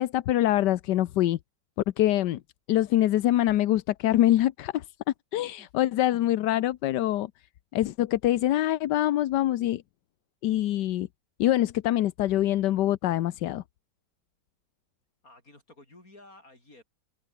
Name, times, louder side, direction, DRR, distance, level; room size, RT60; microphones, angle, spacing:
voice 1, 0.0-1.4 2.0-2.4 2.7-4.8 5.3-7.3 7.7-9.8 10.4-11.1 11.4-13.6, left 13 dB, 85° left, 1.4 m, -24 dB
voice 2, 5.3-5.7 15.2-16.8, left 2 dB, 55° left, 7.6 m, -53 dB
omnidirectional pair, 1.8 m